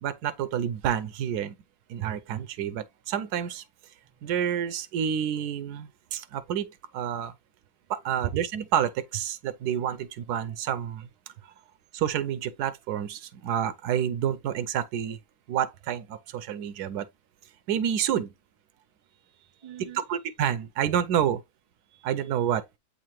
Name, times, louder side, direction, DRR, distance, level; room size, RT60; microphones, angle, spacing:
voice 1, 0.0-1.6 1.9-3.6 4.2-7.3 7.9-11.1 11.9-15.2 15.5-17.1 17.7-18.3 20.1-21.4 22.0-22.6, right 9 dB, 80° right, 1.2 m, -29 dB
voice 2, 19.0-20.1 21.8-22.6, right 11 dB, 45° right, 0.5 m, -50 dB
8.1 x 3.8 x 3.0 m
omnidirectional pair, 1.7 m